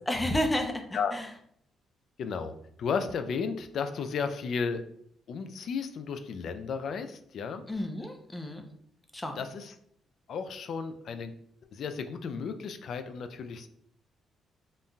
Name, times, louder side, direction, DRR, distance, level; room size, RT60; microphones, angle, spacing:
voice 1, 0.1-1.3 7.7-8.6 9.1-9.4, left 1 dB, 15° left, 4 dB, 0.5 m, -31 dB
voice 2, 2.2-4.8 5.3-7.6 9.4-9.7 10.3-11.3 11.7-13.7, left 5 dB, 65° left, 9 dB, 0.3 m, -33 dB
3.7 x 2.5 x 2.2 m, 0.70 s
cardioid pair, 90°, 0 cm